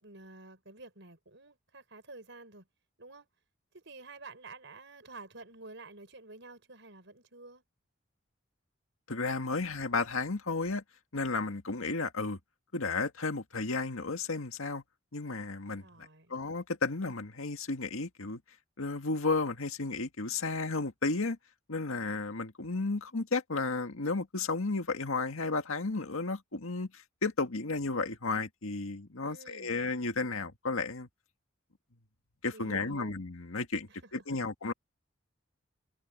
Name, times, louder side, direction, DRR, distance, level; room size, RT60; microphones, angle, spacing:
voice 1, 0.0-2.7 3.0-3.3 3.7-7.6 15.8-16.4 29.2-29.9 32.5-33.2 33.9-34.1, right 3 dB, 60° right, 6.4 m, -50 dB
voice 2, 9.1-10.8 11.1-12.4 12.7-14.8 15.1-15.8 16.3-18.4 18.8-21.4 21.7-31.1 32.4-34.7, left 3 dB, 85° left, 1.8 m, -33 dB
head